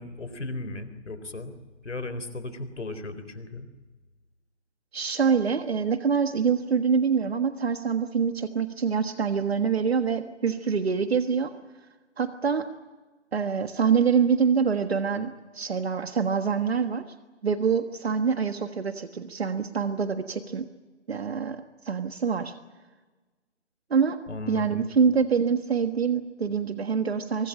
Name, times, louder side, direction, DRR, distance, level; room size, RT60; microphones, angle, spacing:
voice 1, 0.0-1.5 1.8-3.7 24.3-24.9, left 2 dB, 85° left, 11 dB, 4.0 m, -36 dB
voice 2, 4.9-11.5 12.2-12.7 13.3-17.1 17.4-20.7 21.1-22.5 23.9-24.2 24.5-27.5, right 6 dB, 60° right, 8 dB, 1.6 m, -25 dB
23.5 x 20.0 x 8.8 m, 1.3 s
figure-of-eight pair, 160°, 35 cm